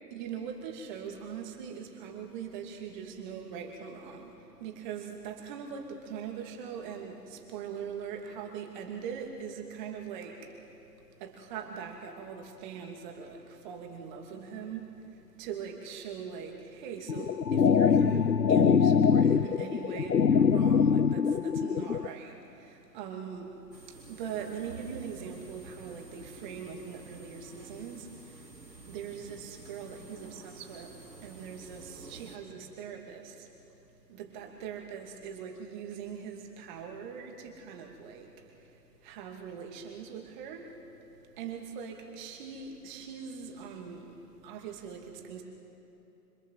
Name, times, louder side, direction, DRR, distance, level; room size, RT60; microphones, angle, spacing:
voice 1, 0.1-4.3 4.6-10.5 11.2-15.0 15.4-23.6 24.1-28.4 28.8-33.5 34.1-38.3 39.0-40.7 41.4-44.1 44.4-45.4, right 7 dB, 30° right, 2 dB, 2.8 m, -41 dB
sound 1, 17.1-22.1, left 6 dB, 90° left, 0.8 m, -23 dB
sound 2, 23.7-32.4, right 2 dB, 90° right, 3.8 m, -50 dB
27.0 x 24.0 x 7.7 m, 2.9 s
figure-of-eight pair, 135°, 49 cm